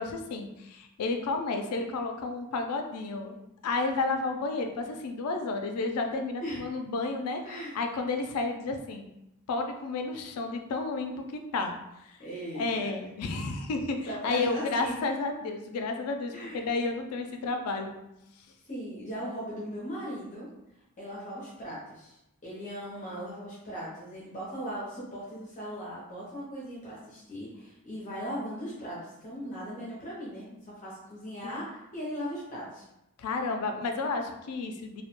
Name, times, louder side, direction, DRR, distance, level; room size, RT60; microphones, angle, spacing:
voice 1, 0.0-3.3 3.6-7.4 7.7-9.1 9.5-12.2 12.5-18.0 31.4-31.5 33.2-35.0, left 3 dB, 80° left, 5 dB, 0.3 m, -31 dB
voice 2, 12.2-12.9 14.1-14.9 16.3-16.6 18.7-20.5 21.0-32.8, equal, 35° left, -7 dB, 0.6 m, -38 dB
2.2 x 2.1 x 2.9 m, 0.88 s
head